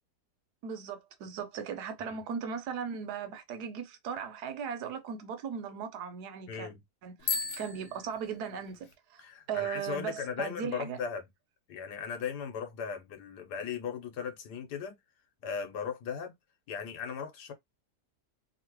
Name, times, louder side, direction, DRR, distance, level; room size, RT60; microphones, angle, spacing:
voice 1, 0.6-6.7 7.0-9.2 9.5-11.0, right 7 dB, 80° right, 1.3 m, -38 dB
voice 2, 6.5-6.8 9.2-11.2 11.7-15.0 15.4-16.3 16.7-17.5, left 6 dB, 85° left, 1.5 m, -37 dB
Bicycle bell, 7.2-8.9, left 5 dB, 60° left, 1.2 m, -36 dB
2.9 x 2.8 x 2.9 m
omnidirectional pair, 1.7 m